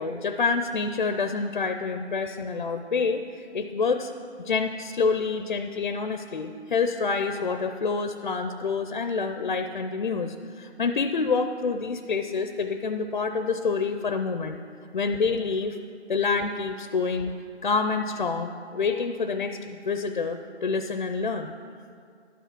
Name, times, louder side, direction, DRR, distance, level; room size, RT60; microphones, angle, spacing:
voice 1, 0.0-4.1 4.4-14.6 14.9-15.8 16.1-17.3 17.6-21.5, left 4 dB, 45° left, 7 dB, 0.4 m, -27 dB
12.0 x 5.8 x 6.0 m, 2.3 s
figure-of-eight pair, 155°, 35 cm